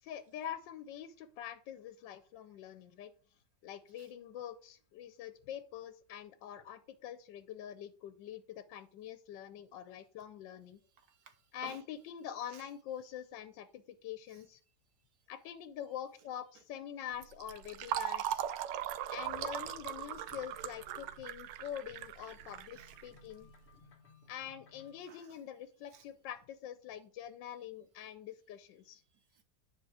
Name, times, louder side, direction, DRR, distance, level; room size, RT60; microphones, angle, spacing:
voice 1, 0.0-3.1 3.6-10.8 11.5-14.6 15.3-18.4 19.1-23.5 24.3-29.0, left 10 dB, 80° left, 1.3 m, -45 dB
voice 2, 10.9-11.8 12.5-12.7 14.3-14.4 16.5-16.6 19.0-19.1 22.7-22.9 23.6-23.7 24.0-24.1 25.0-25.4 25.9-26.0 29.1-29.4, right 7 dB, 60° right, 1.3 m, -57 dB
Fill (with liquid), 17.2-23.6, right 10 dB, 80° right, 1.3 m, -39 dB
sound 1, 19.2-25.0, left 4 dB, 40° left, 1.2 m, -61 dB
9.5 x 4.6 x 4.8 m
omnidirectional pair, 1.9 m